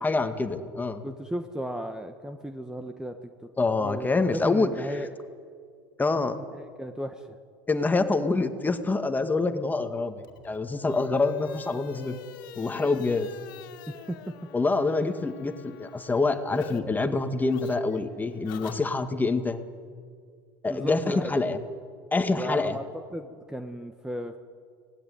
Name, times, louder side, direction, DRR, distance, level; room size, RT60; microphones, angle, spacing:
voice 1, 0.0-1.0 3.6-4.7 6.0-6.4 7.7-12.2 12.6-13.3 14.5-19.6 20.6-21.6 22.1-22.8, left 3 dB, 15° left, 7 dB, 1.9 m, -26 dB
voice 2, 1.0-3.3 3.8-5.1 6.5-7.4 13.9-14.4 20.6-21.3 22.3-22.8 23.1-24.4, equal, 5° right, 7 dB, 1.4 m, -35 dB
sound 1, 10.2-16.8 17.1-19.3, left 9 dB, 80° left, 2.4 m, -47 dB
25.0 x 18.5 x 9.5 m, 2.2 s
hypercardioid pair, 90°, 11 cm